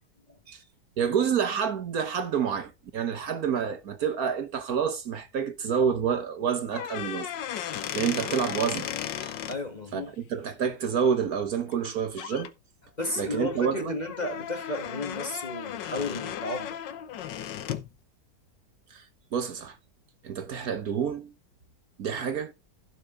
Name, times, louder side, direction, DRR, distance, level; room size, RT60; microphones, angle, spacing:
voice 1, 1.0-7.3 7.9-8.9 9.2-9.3 9.9-12.5 13.2-13.9 18.9-19.1 19.3-19.8 20.2-21.3 22.0-22.5, right 7 dB, 60° right, 1.4 m, -28 dB
sound 1, 6.7-9.6 11.7-11.9 12.2-12.5 13.0-17.9, left 10 dB, 85° left, 1.5 m, -35 dB
voice 2, 9.5-10.1 13.0-16.8, left 2 dB, 25° left, 1.6 m, -33 dB
15.5 x 5.9 x 3.8 m
omnidirectional pair, 1.9 m